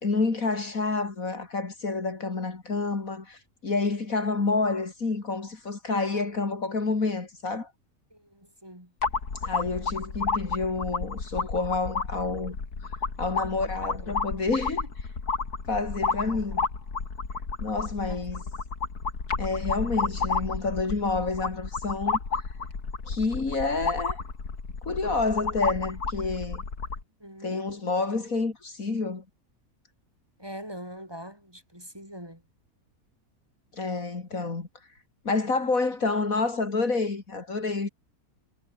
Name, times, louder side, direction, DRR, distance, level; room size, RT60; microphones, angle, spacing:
voice 1, 0.0-7.7 9.4-12.6 13.2-14.8 15.7-16.6 17.6-18.4 19.4-22.2 23.1-24.2 24.8-26.6 27.4-29.2 33.8-34.7 35.2-37.9, left 3 dB, 65° left, 3.3 m, -28 dB
voice 2, 8.1-8.9 13.3-14.1 16.1-16.4 18.1-18.2 27.2-27.6 30.4-32.4 37.7-37.8, equal, 15° right, 6.4 m, -42 dB
sound 1, 9.0-27.0, left 4 dB, 85° left, 3.4 m, -31 dB
omnidirectional pair, 1.6 m